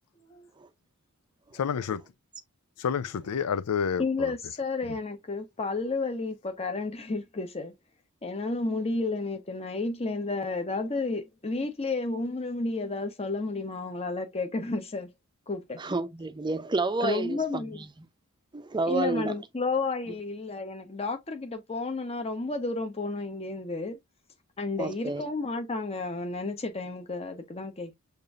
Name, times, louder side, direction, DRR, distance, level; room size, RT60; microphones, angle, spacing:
voice 1, 1.6-2.0 2.8-4.3 4.9-5.0, left 7 dB, 90° left, 0.4 m, -29 dB
voice 2, 4.0-7.7 8.2-15.1 15.5-15.8 17.0-17.8 18.9-24.0 24.6-27.9, left 3 dB, 30° left, 0.8 m, -31 dB
voice 3, 15.8-17.9 18.5-19.3 24.8-25.2, right 3 dB, 20° right, 0.5 m, -30 dB
6.7 x 2.6 x 2.3 m
head